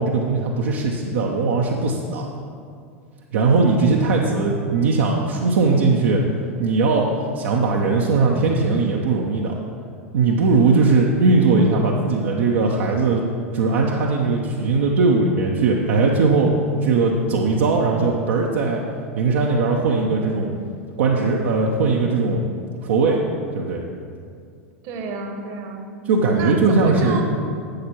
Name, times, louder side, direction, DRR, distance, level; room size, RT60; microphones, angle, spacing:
voice 1, 0.0-2.2 3.3-6.2 6.6-7.1 7.3-9.6 10.1-13.2 13.5-18.8 19.1-20.5 21.0-22.4 22.8-23.2 23.5-23.8 26.1-27.2, right 3 dB, 60° right, -1 dB, 0.7 m, -19 dB
voice 2, 24.8-25.9 26.3-27.2, right 4 dB, 45° right, 4 dB, 1.1 m, -30 dB
11.5 x 8.3 x 2.9 m, 2.3 s
figure-of-eight pair, 85°, 8 cm